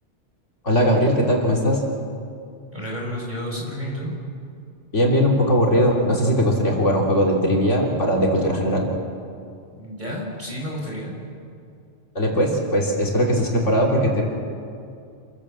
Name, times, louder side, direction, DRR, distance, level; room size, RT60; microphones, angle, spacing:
voice 1, 0.6-1.8 4.9-8.9 12.2-14.2, equal, 80° left, -1 dB, 3.7 m, -19 dB
voice 2, 2.7-4.1 9.8-11.1, equal, 40° right, -2 dB, 5.5 m, -31 dB
27.5 x 16.0 x 7.6 m, 2.4 s
omnidirectional pair, 1.2 m